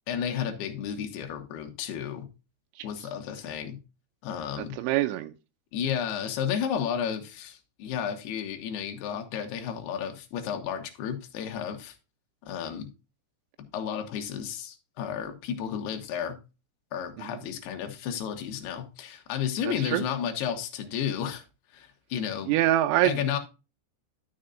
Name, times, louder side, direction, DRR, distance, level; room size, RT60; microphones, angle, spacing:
voice 1, 0.1-2.3 2.8-3.8 4.2-4.8 5.7-12.0 12.4-12.9 13.7-16.4 16.9-21.4 21.7-22.5 23.0-23.4, left 8 dB, 70° left, 3.1 m, -32 dB
voice 2, 4.6-5.3 17.2-17.4 19.7-20.0 22.5-23.4, right 14 dB, 90° right, 3.0 m, -26 dB
12.0 x 6.7 x 2.5 m
omnidirectional pair, 5.2 m